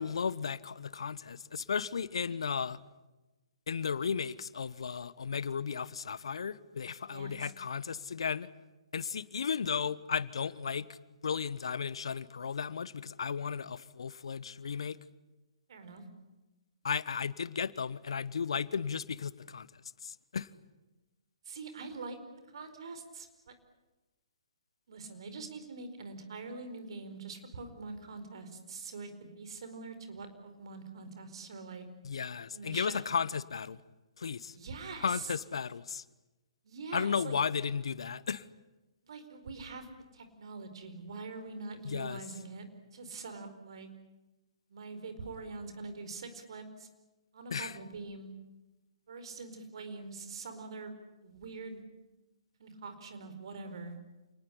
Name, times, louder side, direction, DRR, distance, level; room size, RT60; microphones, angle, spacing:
voice 1, 0.0-2.8 3.7-8.5 8.9-11.0 11.2-15.0 16.8-19.7 20.0-20.5 32.0-33.8 34.2-34.5 35.0-36.0 36.9-38.4 41.8-42.2 47.5-47.8, left 6 dB, 65° left, 18 dB, 1.1 m, -34 dB
voice 2, 7.1-7.5 15.7-16.0 21.4-22.2 22.5-23.5 24.9-31.8 32.5-33.1 34.5-35.4 36.6-37.3 39.0-39.9 40.1-43.9 44.7-46.9 47.3-48.3 49.1-50.9 51.2-51.8 52.6-54.0, right 4 dB, 60° right, 9 dB, 4.7 m, -44 dB
28.0 x 19.5 x 10.0 m, 1.1 s
figure-of-eight pair, 130°, 3 cm